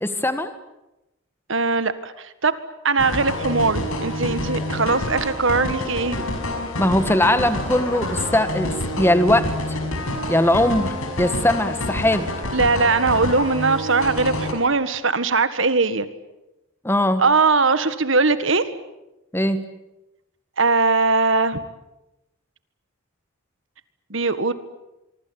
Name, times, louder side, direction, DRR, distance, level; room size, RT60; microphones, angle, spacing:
voice 1, 0.0-0.5 6.8-9.8 10.3-12.3 16.8-17.2 19.3-19.6, left 1 dB, 10° left, 10 dB, 1.7 m, -20 dB
voice 2, 1.5-2.5 2.8-6.2 12.5-16.1 17.2-18.7 20.6-21.6 24.1-24.5, right 3 dB, 60° right, 13 dB, 1.7 m, -20 dB
sound 1, 3.0-14.5, left 1 dB, 85° left, 5.9 m, -28 dB
25.0 x 24.5 x 8.8 m, 0.95 s
head